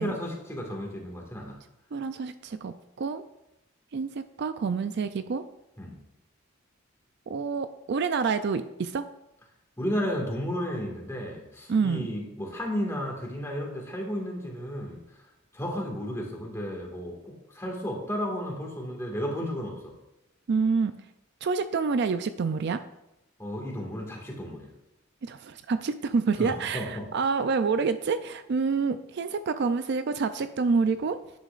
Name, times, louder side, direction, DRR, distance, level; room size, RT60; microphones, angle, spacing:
voice 1, 0.0-1.6 5.8-6.0 9.8-15.3 15.5-19.9 23.4-24.7 26.4-27.1, equal, 15° left, -1 dB, 1.9 m, -33 dB
voice 2, 1.9-3.2 3.9-5.4 7.3-9.1 11.7-12.1 20.5-20.9 21.4-22.8 25.2-31.2, right 5 dB, 55° right, 11 dB, 0.4 m, -27 dB
10.0 x 9.2 x 2.5 m, 0.89 s
head